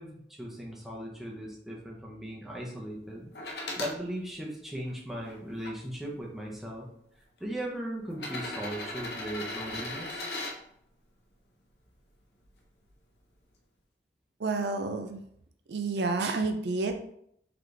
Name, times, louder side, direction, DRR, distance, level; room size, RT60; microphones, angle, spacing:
voice 1, 0.0-6.9 7.4-10.2, right 1 dB, ahead, -3 dB, 0.8 m, -38 dB
sound 1, 3.3-4.0 4.7-5.7 6.7-6.8 8.1-10.6 12.4-12.5, left 2 dB, 65° left, 0.8 m, -37 dB
voice 2, 14.4-15.2 15.7-16.9, right 3 dB, 70° right, 5 dB, 0.5 m, -29 dB
3.9 x 3.1 x 3.3 m, 0.70 s
head